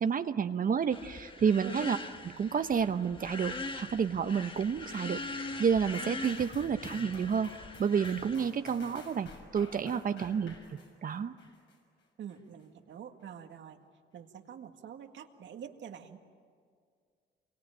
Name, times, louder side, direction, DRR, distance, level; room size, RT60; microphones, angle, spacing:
voice 1, 0.0-2.0 2.2-7.5 7.8-10.5 11.0-11.3, right 7 dB, 45° right, 9 dB, 0.9 m, -30 dB
sound 1, 0.9-8.3, left 3 dB, 25° left, 1.4 m, -42 dB
sound 2, 5.9-11.8 12.3-12.4, left 4 dB, 70° left, 6.3 m, -52 dB
voice 2, 12.2-13.8 14.1-16.2, right 8 dB, 65° right, 6 dB, 1.9 m, -46 dB
28.0 x 23.5 x 9.0 m, 2.1 s
cardioid pair, 90°, 20 cm